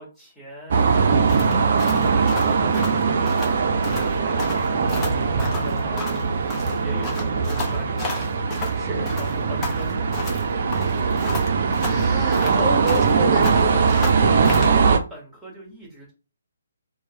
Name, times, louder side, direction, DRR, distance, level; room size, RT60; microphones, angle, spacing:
voice 1, 0.0-8.3 9.1-11.2 12.4-13.6 14.5-16.1, equal, ahead, 1.4 m, -40 dB
sound 1, 0.7-15.0, right 5 dB, 45° right, 0.4 m, -21 dB
sound 2, 1.3-3.6 3.8-4.1 4.4-6.3 6.5-8.8 9.1-10.4 10.7-13.2 13.4-14.8, left 2 dB, 15° left, 0.8 m, -33 dB
voice 2, 8.7-9.2 11.8-14.1, right 2 dB, 20° right, 0.9 m, -29 dB
2.9 x 2.1 x 2.9 m
figure-of-eight pair, 135°, 0 cm